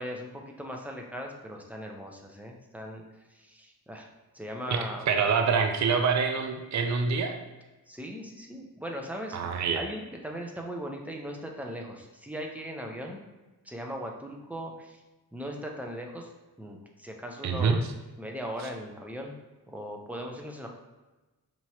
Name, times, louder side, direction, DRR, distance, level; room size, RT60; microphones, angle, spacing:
voice 1, 0.0-3.0 3.3-4.1 4.3-5.1 7.9-9.4 9.7-13.2 13.6-15.0 15.3-16.3 16.6-17.8 18.2-19.3 19.7-20.7, equal, 5° right, 1 dB, 0.6 m, -38 dB
voice 2, 4.7-7.3 9.3-9.8 17.4-17.8, right 5 dB, 50° right, 5 dB, 0.5 m, -26 dB
4.6 x 2.9 x 2.8 m, 1.1 s
cardioid pair, 80°, 36 cm